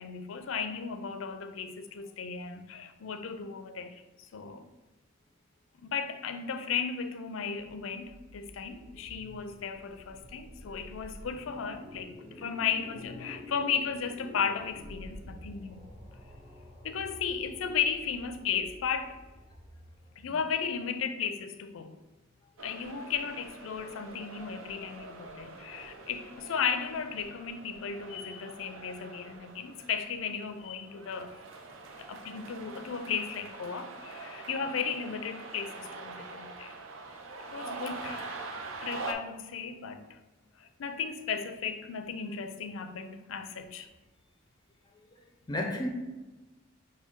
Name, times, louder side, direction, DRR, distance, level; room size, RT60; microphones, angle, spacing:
voice 1, 0.0-4.6 5.8-15.8 16.8-19.2 20.2-22.0 22.6-31.4 32.0-36.7 37.5-38.3 38.8-40.2 40.6-43.9, left 6 dB, 90° left, 0.4 m, -35 dB
sound 1, 7.6-20.7, left 1 dB, 25° right, 0.9 m, -49 dB
sound 2, 22.6-39.1, right 3 dB, 85° right, 0.6 m, -44 dB
voice 2, 37.4-37.8 38.1-38.9 45.1-45.9, left 1 dB, 20° left, 0.4 m, -38 dB
6.1 x 2.3 x 3.6 m
head